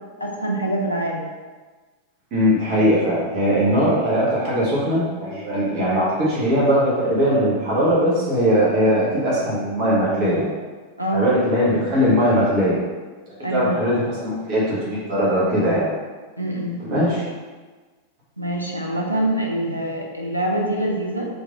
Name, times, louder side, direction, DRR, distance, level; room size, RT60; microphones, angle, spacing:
voice 1, 0.2-1.3 11.0-11.2 13.4-13.8 16.4-16.8 18.4-21.3, right 1 dB, 90° left, -1 dB, 0.4 m, -24 dB
voice 2, 2.3-10.5 11.1-12.8 13.3-15.9 16.8-17.2, equal, 40° right, -7 dB, 1.1 m, -20 dB
3.2 x 2.6 x 3.5 m, 1.3 s
figure-of-eight pair, 90°, 0 cm